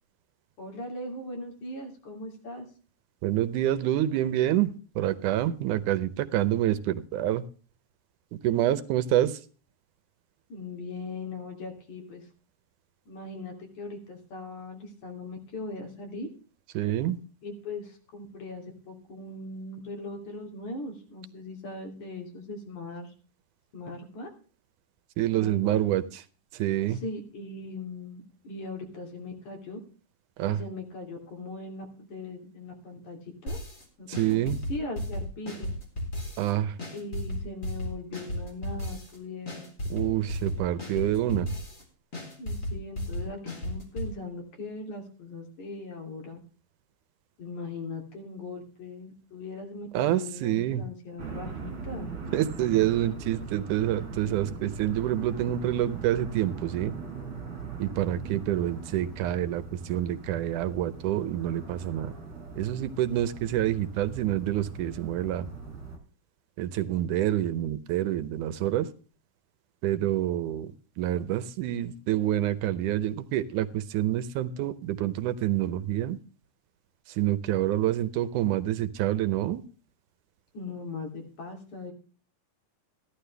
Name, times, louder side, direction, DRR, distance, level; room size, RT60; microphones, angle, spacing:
voice 1, 0.6-2.7 10.5-12.3 13.1-16.3 17.4-23.1 23.7-24.3 25.3-25.8 26.9-29.8 30.5-33.6 34.0-35.7 36.9-39.7 42.4-46.4 47.4-52.1 80.5-81.9, left 2 dB, 65° left, 2 dB, 4.4 m, -39 dB
voice 2, 3.2-7.4 8.3-9.4 16.8-17.2 25.2-26.2 26.5-27.0 30.4-30.6 34.1-34.6 36.4-36.8 39.9-41.5 49.9-50.8 52.3-56.9 57.8-62.1 62.6-65.5 66.6-68.9 69.8-70.7 71.0-76.2 77.1-79.6, right 12 dB, 75° right, 13 dB, 2.2 m, -27 dB
sound 1, 33.5-33.8 34.1-36.5 36.8-39.2 39.5-41.8 42.1-44.1, left 1 dB, 25° left, 4.0 m, -34 dB
sound 2, 51.2-66.0, right 5 dB, 40° right, 3.3 m, -40 dB
15.5 x 12.0 x 3.4 m, 0.39 s
omnidirectional pair, 3.7 m